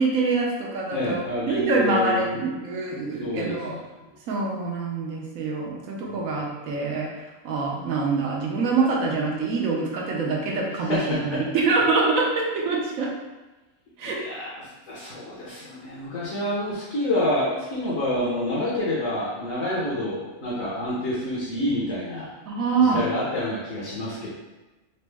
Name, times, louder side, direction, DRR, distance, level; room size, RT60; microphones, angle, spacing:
voice 1, 0.0-1.2 1.5-3.8 4.3-7.1 7.4-13.1 14.0-14.2 22.5-23.0, right 3 dB, 90° right, -2 dB, 1.1 m, -25 dB
voice 2, 0.9-2.5 3.2-3.8 10.8-11.4 14.0-22.3 22.8-24.3, left 1 dB, 65° left, -8 dB, 1.2 m, -28 dB
4.1 x 2.0 x 3.4 m, 1.1 s
omnidirectional pair, 1.4 m